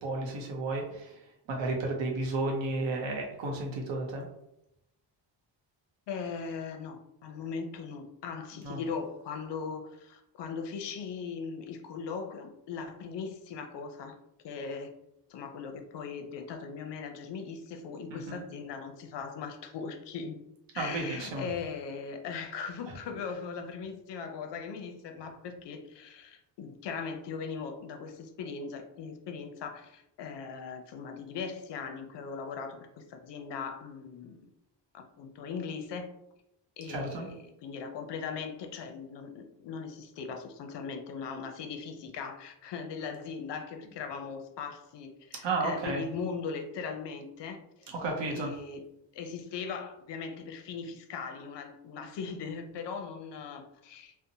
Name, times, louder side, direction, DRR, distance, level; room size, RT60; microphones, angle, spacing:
voice 1, 0.0-4.3 8.6-8.8 18.1-18.4 20.8-21.4 36.9-37.3 45.4-46.0 47.9-48.5, right 2 dB, 80° right, 0 dB, 0.7 m, -33 dB
voice 2, 6.1-14.2 14.4-14.9 15.3-20.4 20.7-34.5 34.9-36.1 36.8-47.9 48.3-48.8 49.1-54.2, left 5 dB, 70° left, 5 dB, 0.5 m, -39 dB
2.7 x 2.0 x 2.6 m, 0.83 s
cardioid pair, 120°, 44 cm